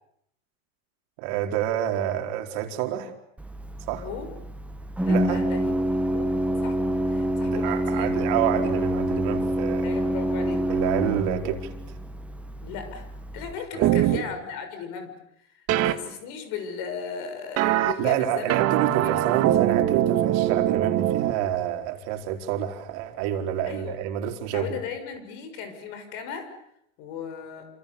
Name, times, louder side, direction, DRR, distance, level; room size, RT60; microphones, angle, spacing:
voice 1, 1.2-3.1 3.8-4.1 5.1-5.4 7.4-9.9 10.7-11.7 13.7-14.2 17.8-24.8, right 11 dB, 60° right, 4 dB, 4.6 m, -28 dB
Organ, 3.4-13.5, right 1 dB, 5° right, 1.6 m, -27 dB
voice 2, 3.9-4.3 5.0-5.7 6.0-6.3 6.6-8.1 9.8-10.6 12.6-13.1 13.3-19.1 23.7-24.0 24.5-26.5 27.0-27.7, left 7 dB, 55° left, 7 dB, 6.5 m, -37 dB
sound 1, 13.8-14.2 15.7-15.9 17.6-17.9 18.5-21.3, right 13 dB, 40° right, 1.9 m, -22 dB
28.5 x 27.5 x 7.0 m, 0.72 s
supercardioid pair, 140°, 38 cm